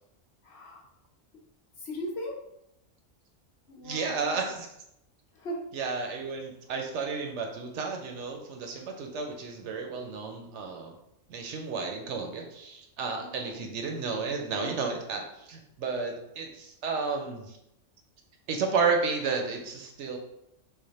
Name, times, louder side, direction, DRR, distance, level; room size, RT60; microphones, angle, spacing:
voice 1, 0.4-0.8 1.8-2.4 3.7-4.5 5.3-5.7 13.2-13.7, equal, 60° left, -3 dB, 1.1 m, -38 dB
voice 2, 3.8-4.7 5.7-10.9 11.3-17.6 18.5-20.2, right 4 dB, 70° right, 3 dB, 0.8 m, -32 dB
3.2 x 2.1 x 4.0 m, 0.81 s
omnidirectional pair, 1.3 m